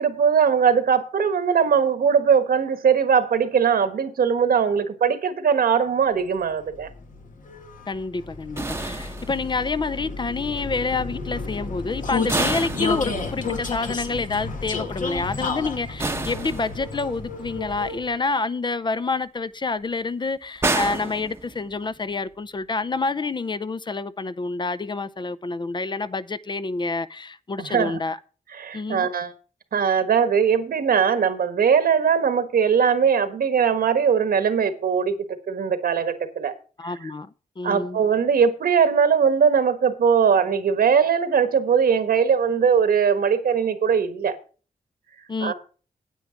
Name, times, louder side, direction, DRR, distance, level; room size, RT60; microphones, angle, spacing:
voice 1, 0.0-6.9 27.7-28.0 28.6-29.3 29.7-36.5 36.8-37.1 37.6-44.4 45.4-45.5, right 7 dB, 90° right, 1.4 m, -20 dB
Vehicle, 6.4-18.3, left 4 dB, 65° left, 1.6 m, -32 dB
voice 2, 7.9-28.2 28.7-29.1 36.8-38.0 45.3-45.5, left 3 dB, 30° left, 0.5 m, -28 dB
sound 1, 8.6-9.8 12.3-13.6 16.0-17.2 20.6-21.9, right 2 dB, 15° right, 0.8 m, -29 dB
9.2 x 8.7 x 5.1 m
wide cardioid pair, 125°, 15 cm